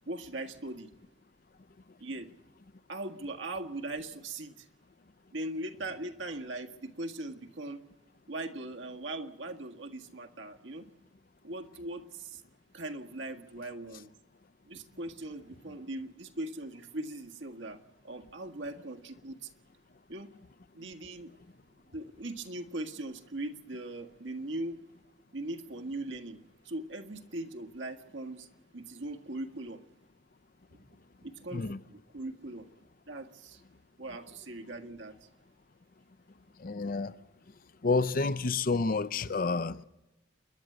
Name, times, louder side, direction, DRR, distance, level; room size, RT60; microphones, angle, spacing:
voice 1, 0.1-0.9 2.0-2.3 2.9-4.7 5.3-7.8 8.3-10.9 11.4-12.4 12.7-14.1 14.6-19.5 20.1-20.3 20.7-21.3 21.9-24.8 25.3-28.5 28.7-29.8 31.2-32.7 33.1-33.6 34.0-35.3 39.7-39.8, right 2 dB, 75° right, 1.7 m, -40 dB
voice 2, 36.6-37.1 37.8-39.8, left 3 dB, 50° left, 0.6 m, -29 dB
29.0 x 11.5 x 8.0 m
head